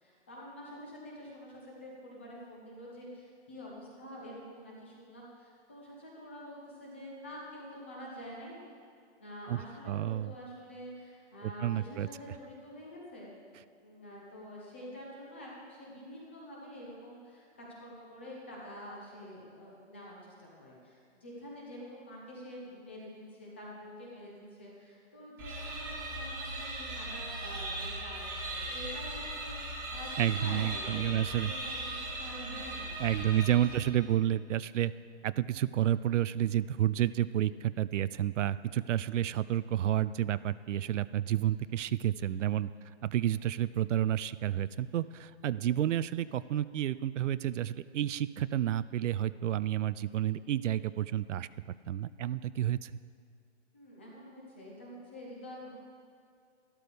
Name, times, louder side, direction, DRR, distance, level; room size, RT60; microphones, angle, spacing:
voice 1, 0.0-8.6 9.2-13.3 13.8-33.3 53.7-55.7, equal, 10° left, -4 dB, 0.6 m, -47 dB
voice 2, 9.9-10.3 11.4-12.1 30.2-31.5 33.0-34.9 35.2-42.7 43.0-51.5 51.9-52.9, right 11 dB, 85° right, 16 dB, 0.5 m, -30 dB
sound 1, 25.4-34.1, right 1 dB, 20° right, 1.1 m, -38 dB
12.5 x 12.0 x 3.4 m, 2.3 s
hypercardioid pair, 175°, 35 cm